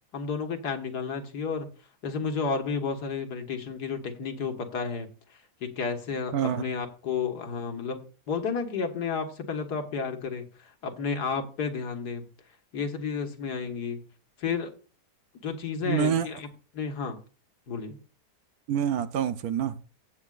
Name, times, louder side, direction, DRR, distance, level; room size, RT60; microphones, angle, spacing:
voice 1, 0.1-1.7 2.0-5.1 5.6-12.3 12.7-14.1 14.4-14.7 15.4-16.5 16.7-17.2 17.7-18.0, left 5 dB, 80° left, 5 dB, 2.1 m, -32 dB
voice 2, 6.3-6.7 15.8-16.3 18.7-19.8, right 8 dB, 70° right, 12 dB, 1.2 m, -26 dB
16.0 x 8.2 x 2.5 m, 0.36 s
omnidirectional pair, 1.7 m